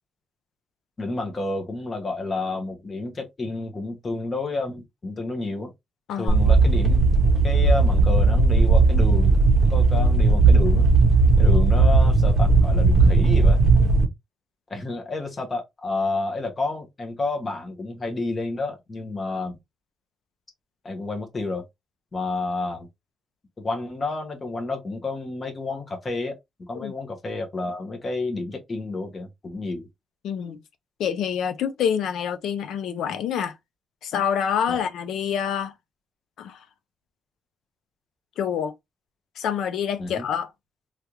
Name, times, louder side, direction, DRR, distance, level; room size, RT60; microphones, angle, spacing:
voice 1, 1.0-5.7 6.2-7.0 7.4-9.4 9.7-10.9 11.4-13.6 14.7-19.6 20.8-21.6 22.1-22.9 23.6-26.4 26.7-29.9 34.7-34.8 40.0-40.3, left 3 dB, 25° left, 0.9 m, -30 dB
sound 1, 6.3-14.1, right 3 dB, 30° right, 0.8 m, -17 dB
voice 2, 30.2-30.6 31.0-33.5 34.0-35.7 36.4-36.6 38.4-38.7 39.4-40.5, left 8 dB, 75° left, 0.5 m, -27 dB
3.3 x 2.4 x 2.9 m
cardioid pair, 175°, 0 cm